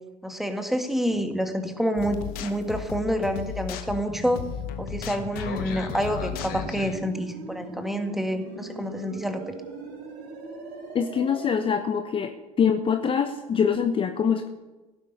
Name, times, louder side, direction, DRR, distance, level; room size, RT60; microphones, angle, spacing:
voice 1, 0.2-4.4 4.8-9.5, equal, ahead, 6 dB, 1.8 m, -28 dB
sound 1, 2.0-7.0, left 8 dB, 50° left, 1.3 m, -35 dB
sound 2, 4.1-11.5, right 1 dB, 55° right, 3.7 m, -40 dB
voice 2, 10.9-12.3 12.6-14.5, left 7 dB, 25° left, 7 dB, 0.9 m, -24 dB
16.5 x 9.5 x 5.6 m, 1.1 s
figure-of-eight pair, 70°, 20 cm